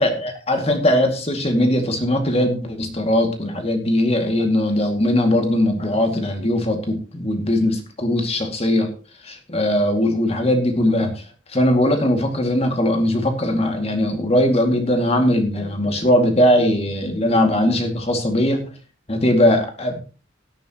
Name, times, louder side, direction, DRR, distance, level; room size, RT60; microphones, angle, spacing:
voice 1, 0.0-8.9 9.2-11.2 11.5-18.7 19.1-20.0, left 1 dB, 30° left, 5 dB, 2.2 m, -20 dB
17.0 x 8.9 x 3.0 m, 0.35 s
head